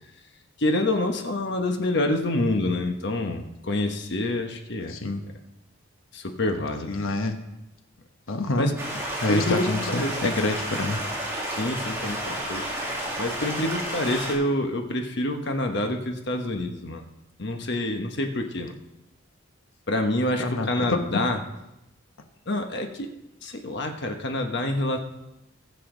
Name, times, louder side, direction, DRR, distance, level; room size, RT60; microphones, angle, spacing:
voice 1, 0.6-5.0 5.2-5.3 6.1-7.0 8.6-8.7 9.3-10.2 11.6-12.7 13.2-17.0 17.4-18.7 19.9-21.4 22.5-23.1 23.4-25.0, left 1 dB, 55° left, 4 dB, 1.2 m, -27 dB
voice 2, 4.9-5.2 6.9-7.3 8.3-8.7 9.2-11.0 20.4-21.0, left 2 dB, 70° left, 5 dB, 1.1 m, -26 dB
Stream, 8.8-14.3, right 1 dB, 10° right, 2.3 m, -31 dB
20.5 x 6.8 x 3.9 m, 0.92 s
head